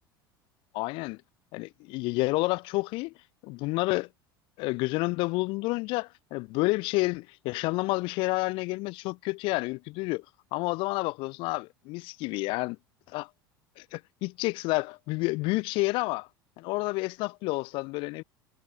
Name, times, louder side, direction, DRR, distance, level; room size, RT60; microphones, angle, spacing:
voice 1, 0.7-1.2 1.5-3.1 3.4-4.1 4.6-10.2 10.5-12.8 13.1-13.3 13.8-16.3 16.6-18.2, left 24 dB, 45° left, 0.5 m, -29 dB
figure-of-eight pair, 75°, 12 cm